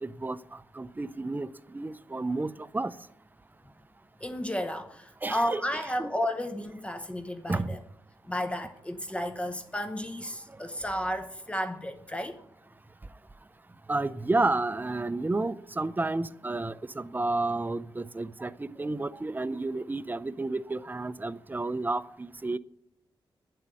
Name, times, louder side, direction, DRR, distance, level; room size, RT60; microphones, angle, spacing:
voice 1, 0.0-2.9 5.2-5.6 6.0-6.1 7.5-7.8 13.9-22.6, right 2 dB, 20° right, 0.5 m, -31 dB
voice 2, 4.2-7.8 8.3-12.4, equal, 15° left, 0.9 m, -33 dB
10.5 x 7.7 x 9.8 m
cardioid pair, 95°, 9 cm